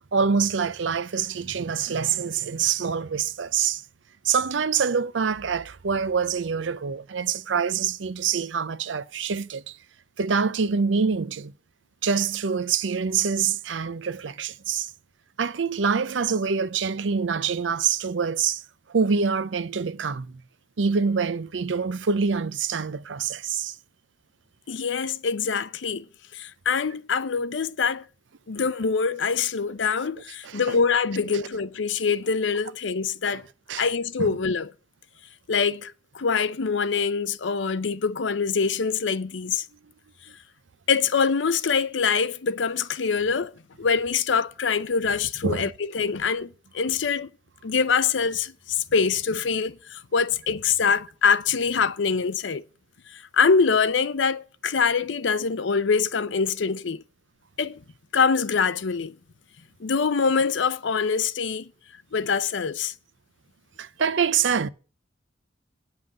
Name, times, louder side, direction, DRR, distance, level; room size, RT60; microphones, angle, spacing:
voice 1, 0.1-3.8 4.2-9.8 10.2-11.5 12.0-14.9 15.4-18.6 18.9-20.4 20.8-23.7 30.4-30.8 33.7-33.8 34.2-34.3 45.4-45.7 63.8-64.7, right 6 dB, 90° right, 0.6 m, -25 dB
voice 2, 24.7-26.0 26.3-28.0 28.5-33.5 33.8-34.7 35.5-39.6 40.9-43.5 43.8-47.3 47.6-52.6 53.1-57.0 57.6-57.8 58.1-59.1 59.8-61.7 62.1-62.9, left 5 dB, 80° left, 0.6 m, -24 dB
9.6 x 5.6 x 7.6 m
head